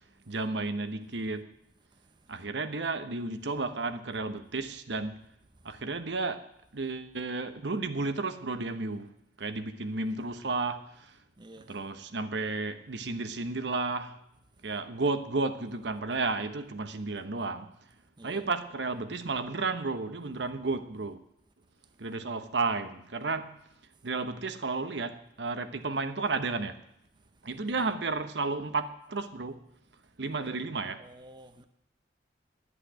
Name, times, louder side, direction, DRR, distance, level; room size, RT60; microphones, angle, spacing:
voice 1, 0.3-1.5 2.3-5.2 5.6-6.5 6.7-9.1 9.4-11.2 11.6-14.2 14.6-17.7 18.2-21.2 22.0-23.6 24.0-26.8 27.4-29.6 30.2-31.1, right 3 dB, 75° right, 1.0 m, -32 dB
voice 2, 11.4-11.8 18.2-18.4 27.7-27.9 31.0-31.6, right 1 dB, 25° right, 0.7 m, -50 dB
11.0 x 8.3 x 10.0 m
head